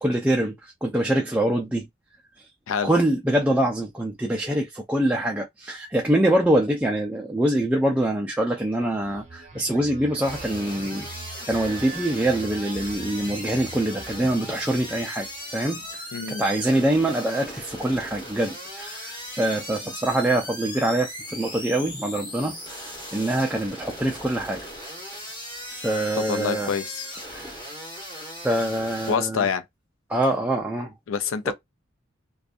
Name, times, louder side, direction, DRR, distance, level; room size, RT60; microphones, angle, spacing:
voice 1, 0.0-1.8 2.8-15.3 15.5-16.0 16.3-22.8 23.1-24.6 25.7-26.7 27.3-27.6 28.4-29.5 30.1-30.9 31.5-31.6, right 1 dB, 5° right, 0.4 m, -24 dB
sound 1, 8.8-15.4, right 4 dB, 35° right, 0.7 m, -42 dB
sound 2, 10.2-29.2, equal, 20° left, 1.2 m, -38 dB
voice 2, 16.1-16.4 26.3-27.1 29.1-29.6 31.1-31.5, left 6 dB, 85° left, 0.4 m, -26 dB
2.5 x 2.3 x 2.4 m
head